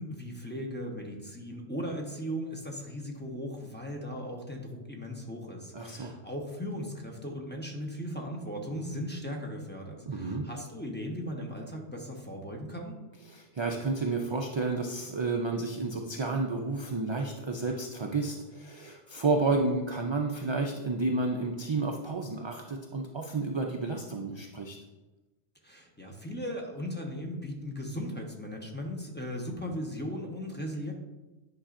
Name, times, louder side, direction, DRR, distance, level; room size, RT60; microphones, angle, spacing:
voice 1, 0.0-13.0 25.6-30.9, equal, 10° left, -1 dB, 0.8 m, -37 dB
voice 2, 5.7-6.1 10.1-10.5 13.3-24.8, right 3 dB, 45° right, 1 dB, 0.4 m, -31 dB
9.9 x 5.5 x 2.5 m, 1.1 s
omnidirectional pair, 1.2 m